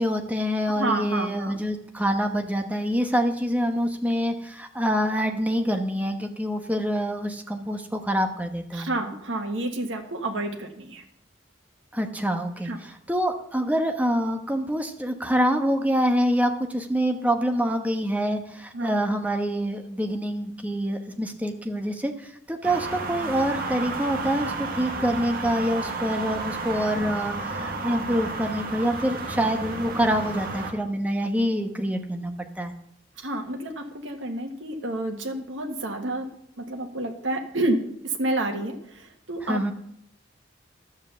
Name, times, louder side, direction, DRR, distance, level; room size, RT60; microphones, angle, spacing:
voice 1, 0.0-8.9 11.9-32.7 39.4-39.7, equal, 10° right, 5 dB, 1.1 m, -26 dB
voice 2, 0.8-1.6 8.7-11.0 12.6-12.8 18.7-18.9 33.2-36.3 36.6-39.7, right 2 dB, 80° right, 3 dB, 1.6 m, -29 dB
sound 1, 22.6-30.7, right 3 dB, 50° right, 1.6 m, -32 dB
12.0 x 7.5 x 7.0 m, 0.72 s
head